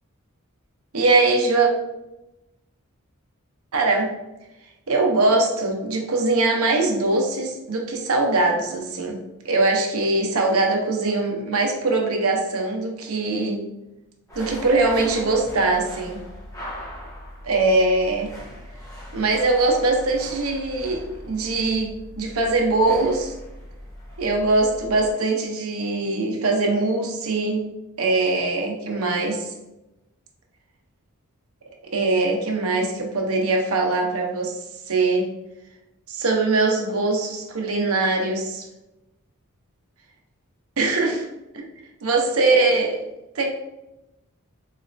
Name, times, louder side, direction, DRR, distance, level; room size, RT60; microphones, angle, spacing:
voice 1, 0.9-1.7 3.7-4.1 4.9-9.2 9.4-13.6 14.4-16.2 17.4-18.3 19.1-23.3 24.2-27.6 28.0-29.5 31.9-35.3 36.1-38.7 40.8-41.3 41.5-41.7 42.0-43.0 43.3-43.5, right 3 dB, 75° right, 1 dB, 0.7 m, -22 dB
sound 1, 14.3-25.1, equal, 15° left, 1.0 m, -40 dB
4.0 x 3.1 x 2.6 m, 0.96 s
head